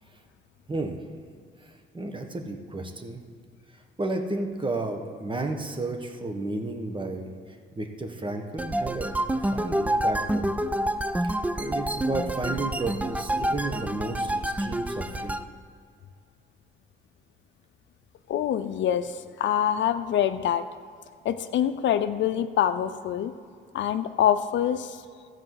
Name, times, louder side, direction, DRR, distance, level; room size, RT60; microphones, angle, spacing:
voice 1, 0.7-1.0 1.6-3.2 4.0-7.3 7.7-10.6 11.2-15.4, right 2 dB, 25° right, 4 dB, 1.5 m, -32 dB
sound 1, 8.6-15.4, right 1 dB, 5° right, 0.5 m, -28 dB
voice 2, 18.3-20.6 21.2-23.3 23.7-25.0, left 10 dB, 70° left, 10 dB, 0.6 m, -25 dB
13.5 x 4.9 x 7.8 m, 2.2 s
cardioid pair, 90°, 20 cm